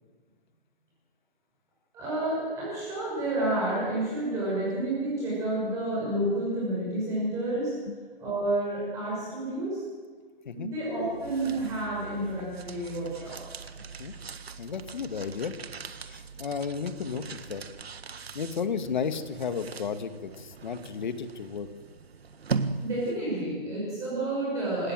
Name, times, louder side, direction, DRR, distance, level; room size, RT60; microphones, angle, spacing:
voice 1, 1.9-7.7 8.2-9.8 10.5-13.4 22.8-24.9, right 1 dB, 10° right, -6 dB, 6.0 m, -30 dB
sound 1, 10.9-23.4, right 5 dB, 90° right, 1.7 m, -40 dB
voice 2, 14.6-15.6 16.0-17.6 18.3-21.7, left 6 dB, 50° left, 10 dB, 1.9 m, -33 dB
28.0 x 17.5 x 7.8 m, 1.5 s
hypercardioid pair, 170°, 30 cm